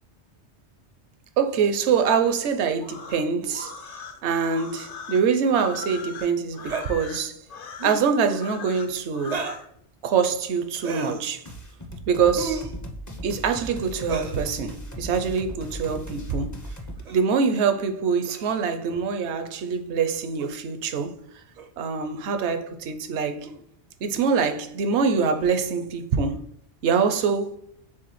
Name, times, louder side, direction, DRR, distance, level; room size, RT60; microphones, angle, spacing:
voice 1, 1.4-3.7 4.2-7.4 7.8-9.4 10.0-11.4 12.1-12.6 13.2-16.5 17.1-21.2 21.8-23.5 24.0-26.4 26.8-27.6, right 6 dB, 80° right, 0.9 m, -24 dB
sound 1, 2.8-9.7, left 5 dB, 60° left, 0.8 m, -40 dB
sound 2, 6.6-6.9 7.7-8.1 9.2-9.7 10.8-11.3 12.3-12.8 14.0-14.4 15.7-16.0 17.1-17.3 18.2-18.7 20.4-20.5 21.6-21.7 22.4-22.6 23.4-23.6 25.1-25.5, right 5 dB, 55° right, 0.5 m, -34 dB
sound 3, 11.4-17.0, equal, 25° left, 0.4 m, -37 dB
4.7 x 3.5 x 3.0 m
omnidirectional pair, 1.2 m